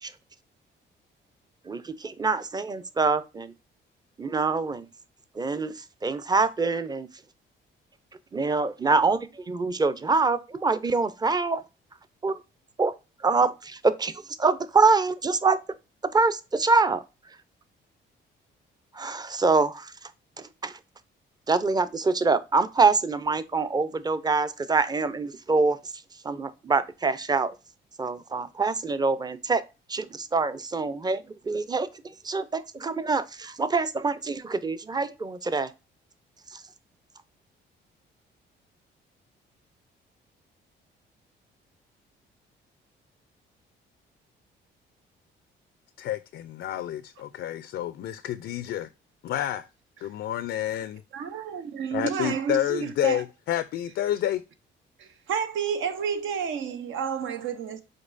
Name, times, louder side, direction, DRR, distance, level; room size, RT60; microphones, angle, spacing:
voice 1, 1.6-3.5 4.2-4.9 5.3-7.1 8.3-11.6 12.2-12.4 12.8-12.9 13.2-15.6 16.1-17.4 18.9-20.1 20.4-20.8 21.5-27.6 28.0-29.6 29.9-35.7 36.5-36.7, right 4 dB, 20° right, 0.5 m, -25 dB
voice 2, 46.0-48.9 49.2-49.7 50.0-51.0 51.9-54.4, left 12 dB, 65° left, 0.4 m, -29 dB
voice 3, 51.1-53.2 55.0-57.8, right 7 dB, 80° right, 0.8 m, -30 dB
5.2 x 3.9 x 2.5 m
cardioid pair, 90°, 20 cm